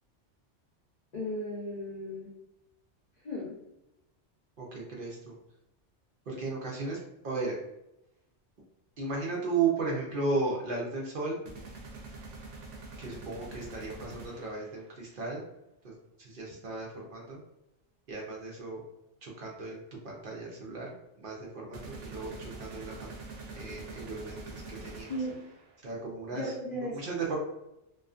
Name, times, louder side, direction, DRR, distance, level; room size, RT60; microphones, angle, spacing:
voice 1, 1.1-2.3 3.2-3.5 25.1-25.3 26.3-27.1, left 1 dB, 50° left, -5 dB, 0.6 m, -35 dB
voice 2, 4.6-5.4 6.3-7.0 7.2-7.6 9.0-11.4 13.0-15.4 15.8-17.4 18.1-18.8 19.2-23.1 23.5-25.1 25.8-27.4, right 4 dB, 60° right, -3 dB, 0.7 m, -35 dB
sound 1, 11.4-14.8 21.7-25.8, right 3 dB, 85° right, 1.0 m, -45 dB
2.4 x 2.3 x 2.4 m, 0.88 s
omnidirectional pair, 1.2 m